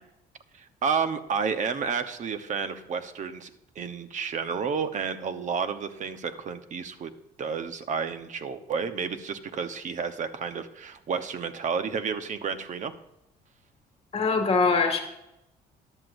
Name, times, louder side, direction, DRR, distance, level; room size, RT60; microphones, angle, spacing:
voice 1, 0.8-3.5 3.7-7.1 7.4-12.9, right 6 dB, 45° right, 10 dB, 1.0 m, -31 dB
voice 2, 14.1-15.0, left 4 dB, 35° left, 4 dB, 2.1 m, -22 dB
14.0 x 11.0 x 2.7 m, 0.85 s
cardioid pair, 110°, 17 cm